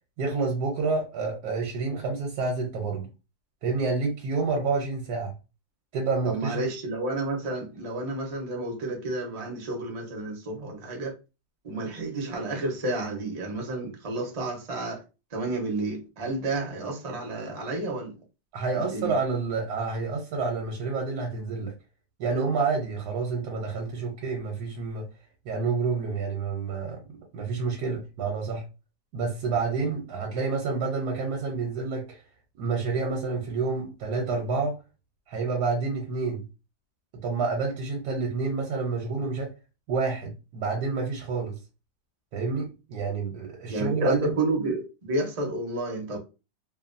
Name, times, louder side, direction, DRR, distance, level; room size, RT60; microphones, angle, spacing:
voice 1, 0.2-3.1 3.6-5.3 5.9-6.6 18.5-21.7 22.2-25.1 25.4-28.6 29.1-32.2 32.5-34.8 35.3-36.5 37.2-39.5 39.9-41.6 42.3-44.3, right 4 dB, 75° right, 1.2 m, -29 dB
voice 2, 6.2-11.1 11.6-15.0 15.3-18.1 18.7-19.2 43.7-46.2, right 2 dB, 35° right, 0.5 m, -30 dB
2.9 x 2.3 x 2.5 m
omnidirectional pair, 1.8 m